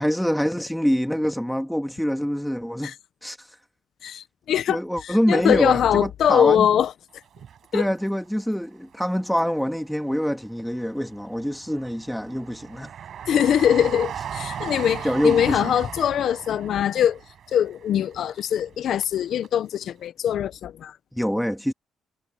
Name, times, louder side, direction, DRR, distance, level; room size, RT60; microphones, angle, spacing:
voice 1, 0.0-2.9 3.2-3.4 4.7-6.7 7.7-12.9 15.0-15.7 21.1-21.7, equal, ahead, 2.4 m, -25 dB
voice 2, 4.0-6.9 7.7-7.9 13.3-17.2 17.5-20.9, left 9 dB, 70° left, 0.7 m, -22 dB
Train, 7.2-8.5 8.9-9.9 10.4-19.2 19.4-19.5, right 9 dB, 60° right, 6.6 m, -37 dB
cardioid pair, 90°, 0 cm